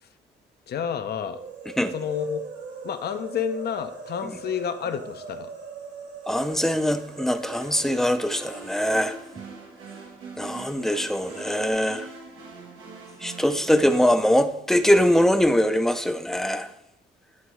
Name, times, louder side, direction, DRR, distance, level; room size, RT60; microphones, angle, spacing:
voice 1, 0.7-1.4 1.9-2.4 2.8-5.5, left 7 dB, 55° left, 0.6 m, -29 dB
sound 1, 1.2-10.1 10.3-10.4 11.1-11.7, right 5 dB, 60° right, 1.4 m, -42 dB
voice 2, 6.3-9.2 10.4-12.1 13.2-16.7, equal, ahead, 0.5 m, -22 dB
sound 2, 7.4-14.2, right 4 dB, 90° right, 1.1 m, -43 dB
9.5 x 3.5 x 3.1 m
cardioid pair, 90°, 20 cm